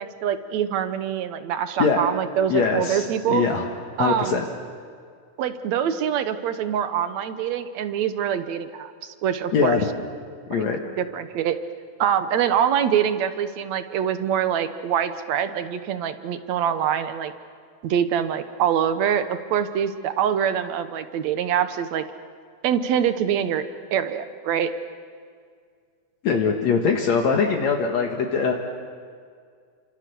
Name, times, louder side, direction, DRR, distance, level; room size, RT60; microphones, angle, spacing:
voice 1, 0.0-3.5 4.0-4.3 5.4-9.8 10.5-10.7 11.0-11.6 12.0-17.3 17.8-22.0 22.6-23.6 23.9-24.7, right 9 dB, 70° right, 10 dB, 2.3 m, -24 dB
voice 2, 2.5-3.7 4.0-4.5 9.5-9.8 10.5-10.8 26.2-28.5, left 5 dB, 65° left, 1 dB, 2.8 m, -22 dB
30.0 x 26.0 x 7.0 m, 2.1 s
omnidirectional pair, 3.4 m